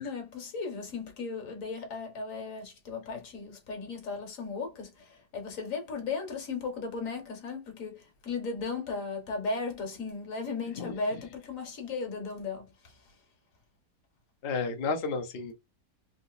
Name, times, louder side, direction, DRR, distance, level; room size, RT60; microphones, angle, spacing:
voice 1, 0.0-12.9, left 4 dB, 50° left, 1.3 m, -36 dB
voice 2, 14.4-15.5, left 4 dB, 70° left, 0.5 m, -32 dB
3.7 x 2.7 x 2.4 m
omnidirectional pair, 1.9 m